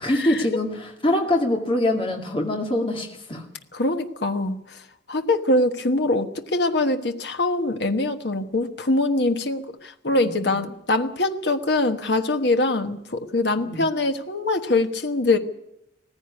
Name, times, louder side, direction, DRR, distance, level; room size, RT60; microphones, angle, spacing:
voice 1, 0.0-3.4 10.1-10.7 13.6-13.8, left 1 dB, 30° left, 1 dB, 2.3 m, -24 dB
voice 2, 3.8-4.6 5.1-9.6 10.0-15.4, left 2 dB, 60° left, 7 dB, 1.3 m, -23 dB
17.5 x 15.5 x 9.6 m, 0.83 s
head